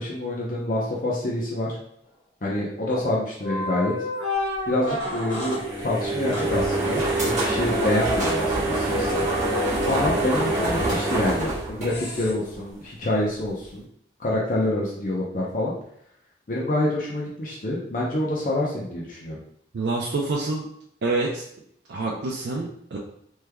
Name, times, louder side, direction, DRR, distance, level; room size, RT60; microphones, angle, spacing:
voice 1, 0.0-1.8 2.4-3.9 4.7-9.3 9.9-13.9 14.2-15.7 16.5-19.4, left 1 dB, 45° left, -5 dB, 0.6 m, -27 dB
sound 1, 2.9-3.1 3.4-5.6 6.3-6.5 7.3-11.5 11.9-12.3, left 1 dB, 85° left, 1.5 m, -31 dB
sound 2, 5.2-12.5, right 2 dB, 40° right, 1.2 m, -26 dB
voice 2, 19.7-20.7 21.0-21.4 21.9-23.0, right 3 dB, 75° right, -2 dB, 0.4 m, -27 dB
3.4 x 3.2 x 2.2 m, 0.69 s
head